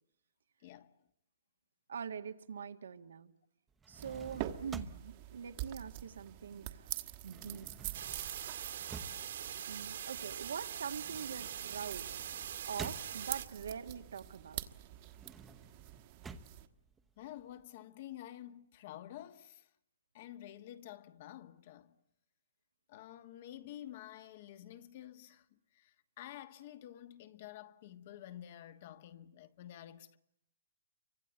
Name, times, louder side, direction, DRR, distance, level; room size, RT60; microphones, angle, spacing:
voice 1, 0.6-1.0 17.2-19.7 20.1-22.0 22.9-30.2, left 12 dB, 40° left, 1.4 m, -50 dB
voice 2, 1.9-3.3 3.9-6.9 7.2-7.9 8.2-8.5 9.6-12.1 12.7-14.6, right 7 dB, 85° right, 1.9 m, -44 dB
sound 1, 3.7-6.5 6.8-13.6 14.1-17.6, right 4 dB, 10° right, 1.0 m, -51 dB
sound 2, 4.0-16.7, right 15 dB, 35° right, 1.4 m, -46 dB
sound 3, 7.9-13.5, right 9 dB, 65° right, 2.1 m, -43 dB
28.5 x 25.0 x 8.1 m
hypercardioid pair, 160°, 0 cm